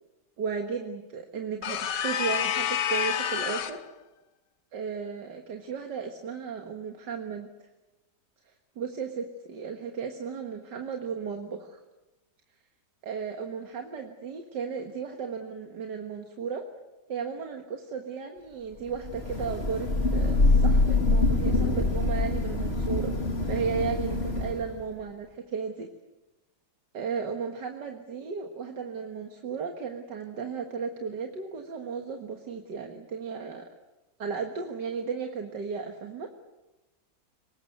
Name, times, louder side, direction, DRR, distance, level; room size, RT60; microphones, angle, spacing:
voice 1, 0.4-3.8 4.7-7.5 8.5-11.8 13.0-16.6 17.1-23.1 23.5-25.9 26.9-33.6 34.2-36.3, right 6 dB, 80° right, 4 dB, 2.2 m, -35 dB
sound 1, 1.6-3.9, left 9 dB, 85° left, 1.7 m, -28 dB
Thunder / Rain, 19.0-24.8, left 2 dB, 35° left, 3.0 m, -25 dB
23.5 x 21.0 x 8.1 m, 1.1 s
omnidirectional pair, 1.8 m